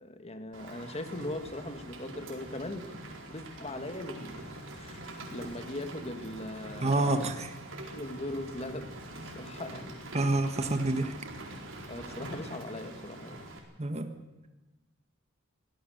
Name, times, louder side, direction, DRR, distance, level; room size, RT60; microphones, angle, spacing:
voice 1, 0.0-2.9 3.3-7.1 7.9-10.1 11.9-13.5, left 1 dB, 30° left, 8 dB, 1.9 m, -40 dB
Rain, 0.5-13.6, right 1 dB, 75° right, 4.5 m, -44 dB
voice 2, 6.8-7.5 10.1-11.1 13.8-14.1, right 2 dB, 35° right, 7 dB, 1.5 m, -28 dB
23.5 x 17.0 x 6.6 m, 1.1 s
head